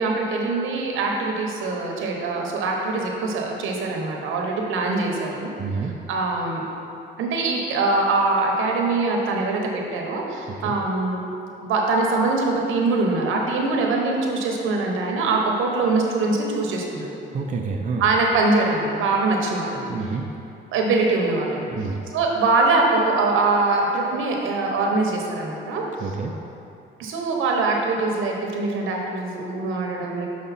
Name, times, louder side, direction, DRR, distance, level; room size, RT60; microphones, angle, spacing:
voice 1, 0.0-5.5 6.1-6.6 7.2-11.2 11.6-17.1 18.0-19.9 20.7-21.7 22.1-25.8 27.0-30.3, right 3 dB, 85° right, 0 dB, 1.0 m, -23 dB
voice 2, 5.6-6.0 10.6-10.8 17.3-18.1 19.9-20.3 21.7-22.0 26.0-26.4, right 4 dB, 40° right, 2 dB, 0.6 m, -28 dB
7.0 x 5.0 x 4.1 m, 2.8 s
cardioid pair, 90°, 20 cm